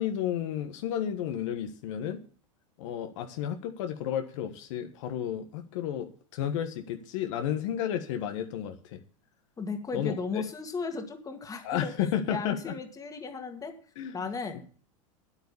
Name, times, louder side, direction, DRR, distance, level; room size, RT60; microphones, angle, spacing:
voice 1, 0.0-2.2 2.8-9.0 9.9-10.4 11.6-12.7 14.0-14.3, left 9 dB, 65° left, 7 dB, 1.4 m, -32 dB
voice 2, 9.6-11.9 12.3-13.7 14.1-14.6, left 4 dB, 20° left, 6 dB, 2.0 m, -35 dB
9.5 x 8.8 x 7.0 m, 0.42 s
hypercardioid pair, 105°, 17 cm